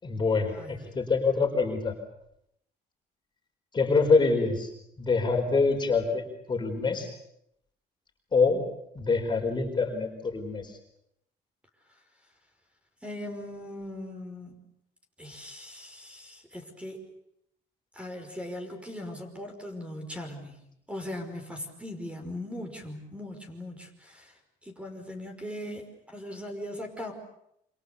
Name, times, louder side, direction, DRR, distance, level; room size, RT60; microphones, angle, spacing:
voice 1, 0.0-1.9 3.7-4.7 5.0-7.1 8.3-8.6 8.9-10.8, left 4 dB, 25° left, 3 dB, 4.8 m, -25 dB
voice 2, 0.5-0.8 13.0-14.6 15.2-17.1 17.9-27.1, left 1 dB, 5° right, 5 dB, 5.3 m, -40 dB
28.0 x 26.5 x 7.0 m, 0.77 s
cardioid pair, 110°, 17 cm